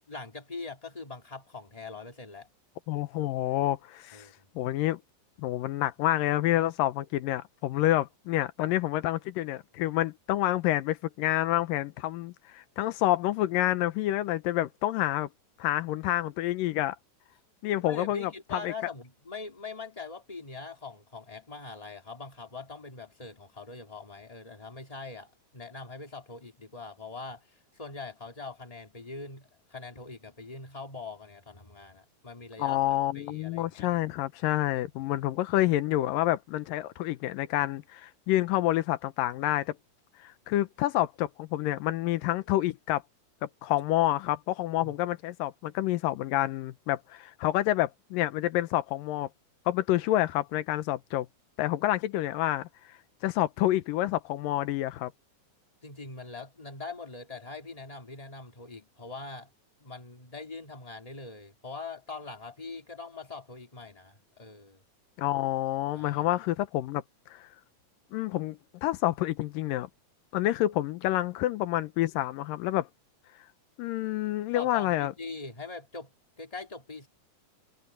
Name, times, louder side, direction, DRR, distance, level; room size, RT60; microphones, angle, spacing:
voice 1, 0.1-2.5 4.1-4.5 7.7-7.8 17.9-32.8 33.1-34.0 34.7-35.2 44.8-44.9 55.8-59.5 59.8-64.8 65.9-66.3 74.5-76.1 76.4-77.1, left 3 dB, 15° left, 2.0 m, -43 dB
voice 2, 2.9-4.3 4.6-5.0 5.4-15.3 15.6-17.0 17.6-18.7 32.6-39.8 40.2-43.0 43.4-49.3 49.7-51.3 51.6-52.7 53.2-55.1 65.2-67.0 67.3-67.5 68.1-69.9 70.3-72.9 73.8-75.1, left 15 dB, 90° left, 2.6 m, -28 dB
omnidirectional pair, 3.8 m